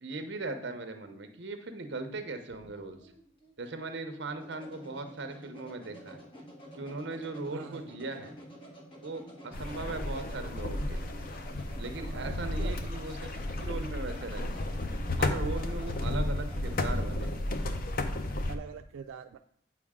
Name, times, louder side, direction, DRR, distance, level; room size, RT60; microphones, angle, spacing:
voice 1, 0.0-3.1 3.6-6.2 6.7-8.4 9.0-11.1 11.8-13.3 13.6-14.5 15.2-17.3, right 3 dB, 60° right, 7 dB, 0.7 m, -39 dB
sound 1, 2.1-17.5, equal, 25° left, 1.1 m, -50 dB
voice 2, 7.5-7.8 10.1-10.2 12.1-12.8 18.5-19.4, right 6 dB, 85° right, 6 dB, 0.3 m, -43 dB
sound 2, 9.5-18.6, left 1 dB, 45° left, 0.5 m, -33 dB
8.3 x 4.7 x 3.6 m, 0.69 s
head